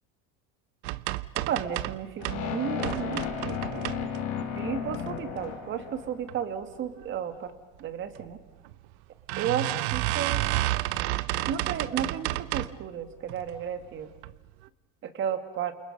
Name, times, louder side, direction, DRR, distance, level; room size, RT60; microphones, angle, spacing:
sound 1, 0.8-2.5 2.8-4.4 4.9-5.5 6.0-6.4 6.6-6.7 7.0-7.1 8.2-8.3 8.7-8.8 9.3-12.9 13.3-13.7 14.2-14.3 14.7-14.8, right 17 dB, 50° right, 0.7 m, -31 dB
voice 1, 1.3-3.9 4.5-7.5 7.8-8.4 9.4-9.7 9.9-10.4 11.5-14.1 15.0-15.7, right 8 dB, 30° right, 9 dB, 1.9 m, -33 dB
sound 2, 2.2-6.3, left 8 dB, 35° left, 5.4 m, -34 dB
29.5 x 28.5 x 5.5 m, 1.1 s
supercardioid pair, 160°, 41 cm